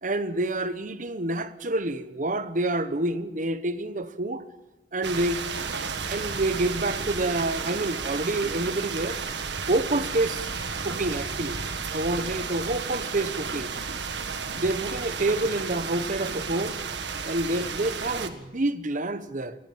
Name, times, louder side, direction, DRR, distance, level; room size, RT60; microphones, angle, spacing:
voice 1, 0.0-4.5 4.9-5.7 6.1-9.2 9.7-10.6 10.8-11.6 11.9-13.7 14.6-16.8 17.2-19.6, right 2 dB, 45° right, 1.2 m, -28 dB
sound 1, 5.0-18.3, right 5 dB, 75° right, 1.7 m, -33 dB
22.5 x 19.5 x 7.3 m
head